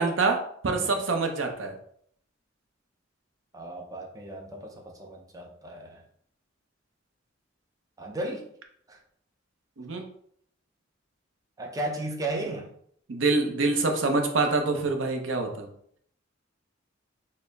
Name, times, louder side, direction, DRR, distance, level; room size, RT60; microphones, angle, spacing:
voice 1, 0.0-1.7 9.8-10.0 13.1-15.7, right 3 dB, 75° right, 4 dB, 0.6 m, -26 dB
voice 2, 3.5-6.0 8.0-8.4 8.9-9.0 11.6-12.7, right 2 dB, 20° right, 0 dB, 0.4 m, -35 dB
4.3 x 2.1 x 3.2 m, 0.66 s
head